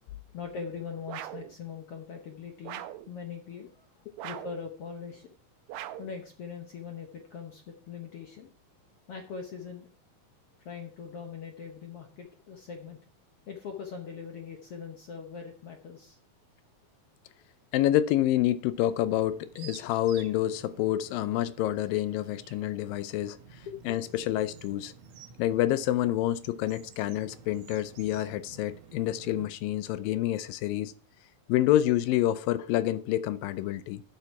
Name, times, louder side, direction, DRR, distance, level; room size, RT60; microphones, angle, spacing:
voice 1, 0.3-3.9 4.2-5.3 6.0-8.5 9.1-9.9 10.6-13.0 13.5-16.2 23.7-23.8, left 6 dB, 65° left, 1.6 m, -41 dB
sound 1, 1.1-1.5 2.6-3.1 4.2-4.6 5.7-6.2, right 12 dB, 85° right, 1.6 m, -40 dB
voice 2, 17.7-23.4 23.9-24.9 25.4-30.9 31.5-34.0, left 13 dB, 85° left, 2.4 m, -28 dB
sound 2, 18.7-29.5, right 7 dB, 65° right, 1.8 m, -52 dB
11.5 x 6.8 x 4.6 m
omnidirectional pair, 4.0 m